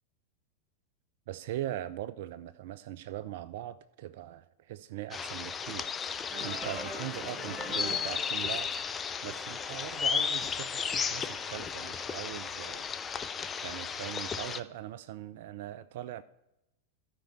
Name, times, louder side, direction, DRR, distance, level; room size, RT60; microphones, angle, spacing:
voice 1, 1.3-8.7 9.2-12.8 13.1-16.2, right 13 dB, 50° right, 0.4 m, -41 dB
sound 1, 5.1-14.6, left 6 dB, 20° left, 0.5 m, -34 dB
sound 2, 6.3-12.7, equal, ahead, 2.3 m, -45 dB
15.0 x 5.2 x 4.6 m
figure-of-eight pair, 90°, 0 cm